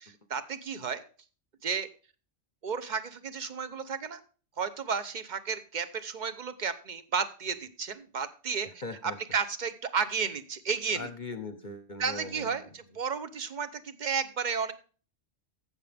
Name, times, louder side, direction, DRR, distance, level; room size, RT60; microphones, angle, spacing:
voice 1, 0.3-1.0 1.6-1.9 2.6-4.2 4.6-8.7 9.0-11.1 12.0-12.6 13.0-14.7, right 6 dB, 40° right, 12 dB, 0.9 m, -32 dB
voice 2, 8.6-9.2 10.9-12.6, left 3 dB, 45° left, 10 dB, 0.8 m, -40 dB
15.0 x 6.8 x 3.4 m, 0.39 s
omnidirectional pair, 1.3 m